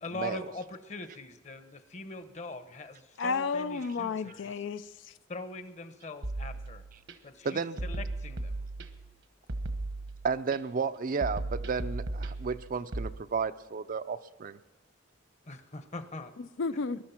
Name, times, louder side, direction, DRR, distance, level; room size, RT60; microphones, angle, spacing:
voice 1, 0.0-4.5 5.3-6.8 7.2-8.6 15.4-16.3, left 2 dB, 40° left, 10 dB, 1.0 m, -42 dB
voice 2, 3.2-5.1 16.4-17.0, left 4 dB, 70° left, 13 dB, 0.4 m, -32 dB
sound 1, 6.2-7.1 7.8-9.1 9.5-10.6 11.2-13.1, right 2 dB, 70° right, 1.2 m, -36 dB
voice 3, 7.4-7.8 10.2-14.6, right 5 dB, 45° right, 12 dB, 0.5 m, -32 dB
20.5 x 11.5 x 5.8 m, 1.2 s
head